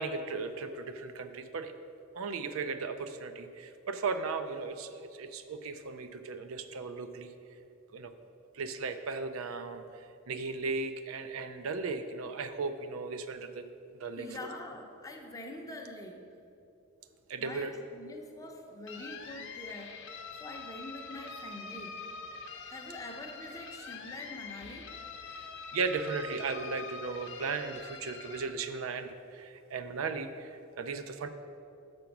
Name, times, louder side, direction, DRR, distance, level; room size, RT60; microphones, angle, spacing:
voice 1, 0.0-1.7 2.1-7.3 7.9-8.1 8.5-13.6 14.0-14.3 17.3-17.7 25.4-31.3, right 4 dB, 75° right, 9 dB, 0.4 m, -36 dB
voice 2, 14.2-16.2 17.4-22.0 22.7-24.9, left 2 dB, 15° left, 2 dB, 0.6 m, -45 dB
sound 1, 18.9-28.5, left 4 dB, 60° left, 0.7 m, -45 dB
6.8 x 5.2 x 5.9 m, 2.7 s
head